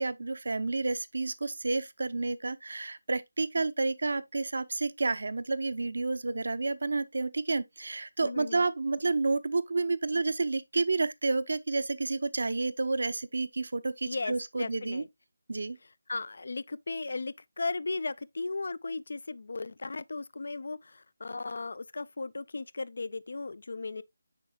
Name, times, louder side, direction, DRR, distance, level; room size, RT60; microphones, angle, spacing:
voice 1, 0.0-15.0 15.5-15.8, right 3 dB, 60° right, 0.6 m, -30 dB
voice 2, 8.2-8.6 14.0-15.1 16.1-24.0, left 3 dB, 60° left, 0.3 m, -36 dB
8.2 x 5.4 x 2.3 m
figure-of-eight pair, 160°, 0 cm